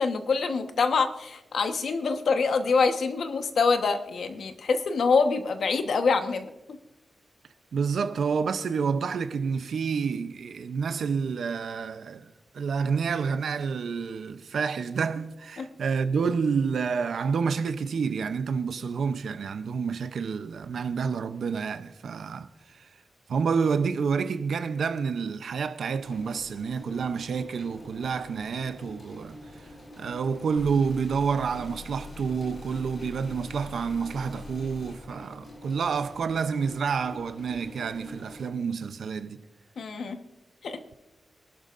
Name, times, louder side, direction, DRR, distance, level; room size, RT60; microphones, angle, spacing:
voice 1, 0.0-6.5 15.6-15.7 39.8-40.2 40.6-40.8, left 4 dB, 70° left, 1.2 m, -25 dB
voice 2, 7.7-22.9 23.3-29.7 30.0-39.4, right 5 dB, 75° right, 0.6 m, -29 dB
sound 1, 26.0-38.5, left 1 dB, 40° left, 5.0 m, -47 dB
sound 2, 30.6-35.0, left 3 dB, 55° left, 4.2 m, -45 dB
24.0 x 12.0 x 2.5 m
wide cardioid pair, 125°, 0 cm